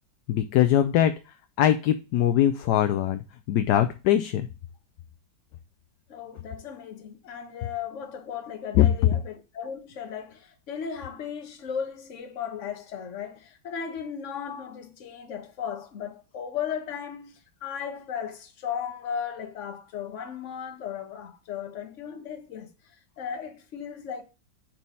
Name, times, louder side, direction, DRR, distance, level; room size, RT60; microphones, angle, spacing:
voice 1, 0.3-1.1 1.6-3.2 3.5-4.5 8.7-8.9, left 11 dB, 70° left, 1.0 m, -21 dB
voice 2, 6.1-22.7 23.2-24.2, left 7 dB, 45° left, 1.2 m, -36 dB
4.6 x 4.3 x 5.3 m
omnidirectional pair, 2.1 m